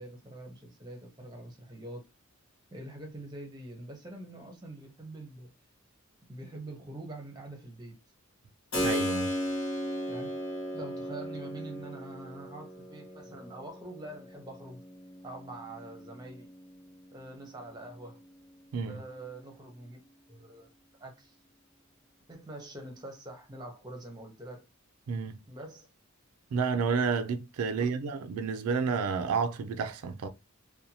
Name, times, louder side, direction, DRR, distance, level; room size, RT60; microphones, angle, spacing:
voice 1, 0.0-2.1 2.7-5.5 6.3-8.0 10.1-10.3 10.7-14.8 15.2-16.6 17.1-18.2 18.8-20.0 20.3-20.7 21.0-21.4 22.3-24.6 25.5-25.9 27.8-27.9, right 2 dB, 20° right, 0.7 m, -45 dB
Keyboard (musical), 8.7-17.3, equal, 55° left, 1.0 m, -36 dB
voice 2, 8.8-9.3 18.7-19.0 25.1-25.3 26.5-30.3, right 5 dB, 85° right, 0.4 m, -30 dB
2.7 x 2.2 x 2.7 m
head